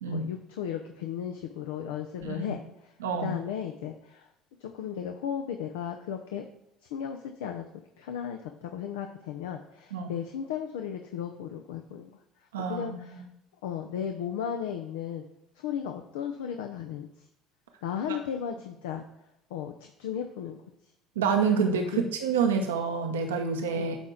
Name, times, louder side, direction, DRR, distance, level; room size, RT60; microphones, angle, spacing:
voice 1, 0.1-2.9 3.2-4.3 4.6-6.5 6.9-7.7 8.0-12.2 12.6-13.2 13.6-15.2 15.6-17.1 17.8-19.0 19.5-20.6 21.9-22.0 23.7-23.9, left 8 dB, 80° left, 5 dB, 0.5 m, -35 dB
voice 2, 2.2-2.6 3.0-3.4 9.9-10.1 12.5-13.0 18.1-18.2 21.2-24.0, right 5 dB, 90° right, 4 dB, 0.7 m, -28 dB
9.1 x 4.4 x 3.8 m, 0.85 s
hypercardioid pair, 65°, 0 cm